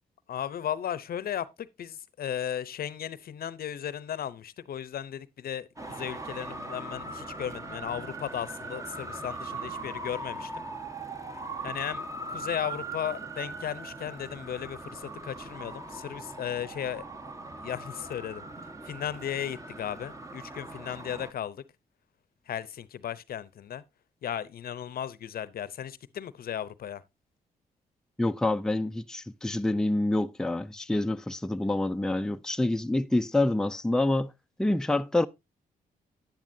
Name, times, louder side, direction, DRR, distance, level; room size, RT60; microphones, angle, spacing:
voice 1, 0.3-10.6 11.3-17.0 17.6-18.5 18.8-21.6 22.5-23.8 24.2-27.0, left 9 dB, 70° left, 0.7 m, -36 dB
Traffic noise roadway noise, 5.8-21.3, right 2 dB, 20° right, 1.4 m, -40 dB
voice 2, 28.2-34.3 34.6-35.3, left 2 dB, 5° left, 0.5 m, -27 dB
10.5 x 10.5 x 2.7 m
cardioid pair, 65°, 16 cm